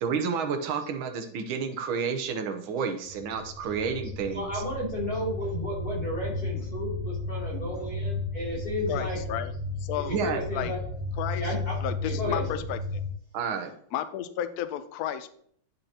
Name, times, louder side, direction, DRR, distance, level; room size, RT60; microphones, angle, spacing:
voice 1, 0.0-4.6 10.1-10.4 13.3-13.7, right 6 dB, 75° right, 6 dB, 1.6 m, -30 dB
sound 1, 3.1-13.1, left 2 dB, 45° right, 0.5 m, -34 dB
voice 2, 4.3-9.2 9.9-10.8 11.3-11.8 12.0-12.6, left 1 dB, 45° left, -6 dB, 3.5 m, -33 dB
voice 3, 8.9-9.5 9.8-10.2 10.5-10.7 11.2-11.4 11.8-13.0 13.9-15.3, left 11 dB, 75° left, 11 dB, 0.8 m, -32 dB
10.5 x 5.4 x 2.8 m, 0.63 s
omnidirectional pair, 2.3 m